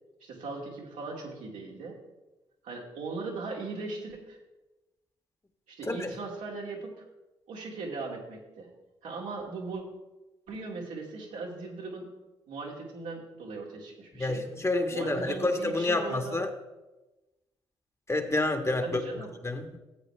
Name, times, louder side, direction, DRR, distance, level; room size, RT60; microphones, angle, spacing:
voice 1, 0.2-2.0 2.6-4.4 5.7-7.0 7.5-8.7 9.0-9.8 10.5-12.1 12.5-14.4 14.9-16.4 18.8-19.3, right 3 dB, 75° right, -2 dB, 2.3 m, -38 dB
voice 2, 14.2-16.5 18.1-19.0 19.4-19.8, left 2 dB, 20° left, 5 dB, 1.5 m, -28 dB
14.5 x 8.1 x 3.3 m, 1.1 s
hypercardioid pair, 45°, 13 cm